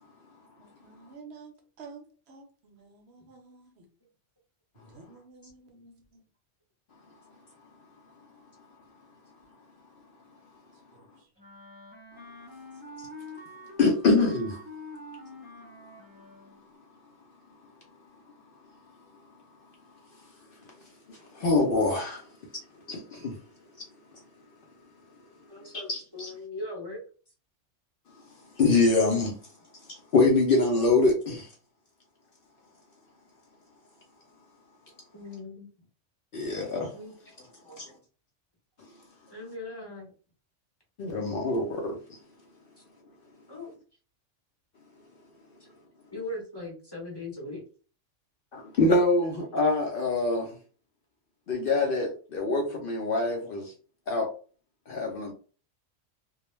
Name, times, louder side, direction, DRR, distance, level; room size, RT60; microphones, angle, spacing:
voice 1, 0.6-3.9 4.7-6.2 10.9-11.3, right 4 dB, 65° right, 0.8 m, -51 dB
Wind instrument woodwind instrument, 11.4-16.6, left 1 dB, 15° right, 0.3 m, -46 dB
voice 2, 13.8-14.6 21.1-22.3 22.9-23.4 25.9-26.3 28.5-29.4 29.9-31.5 36.3-36.9 37.8-37.9 38.8-38.9 41.0-42.0 48.5-50.6 51.5-53.7 54.1-54.3 54.9-55.3, left 3 dB, 60° left, 0.6 m, -25 dB
voice 3, 25.5-27.0 35.1-35.7 36.9-37.9 39.3-40.1 42.8-42.9 43.5-43.7 45.6-45.7 46.1-47.6, left 2 dB, 25° left, 0.6 m, -40 dB
2.2 x 2.1 x 3.0 m
omnidirectional pair, 1.2 m